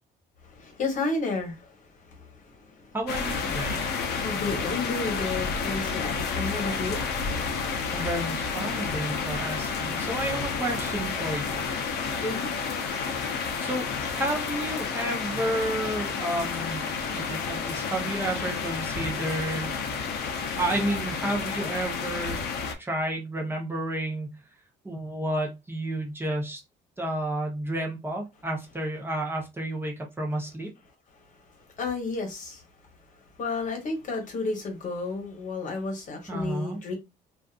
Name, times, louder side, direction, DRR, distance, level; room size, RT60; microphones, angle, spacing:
voice 1, 0.5-1.6 2.6-2.9 4.2-7.0 12.2-12.5 31.8-32.6 33.4-36.9, left 3 dB, 50° left, 1.0 m, -31 dB
voice 2, 2.9-3.8 7.9-11.6 13.6-16.8 17.1-19.7 20.6-22.4 22.8-24.4 24.8-26.6 27.0-30.7 36.3-36.8, right 1 dB, 15° right, 0.8 m, -31 dB
sound 1, 3.1-22.7, left 5 dB, 75° left, 0.6 m, -30 dB
2.5 x 2.4 x 2.3 m
cardioid pair, 110°, 17 cm